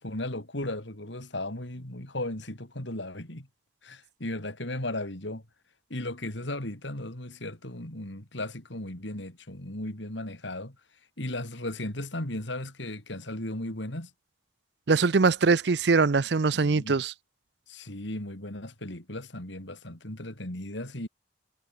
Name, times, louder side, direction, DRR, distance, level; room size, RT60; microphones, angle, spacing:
voice 1, 0.0-3.5 3.8-5.4 5.9-10.8 11.2-14.1 16.5-17.0 17.7-21.1, left 1 dB, 75° left, 4.0 m, -36 dB
voice 2, 14.9-17.1, right 4 dB, 60° right, 0.6 m, -22 dB
head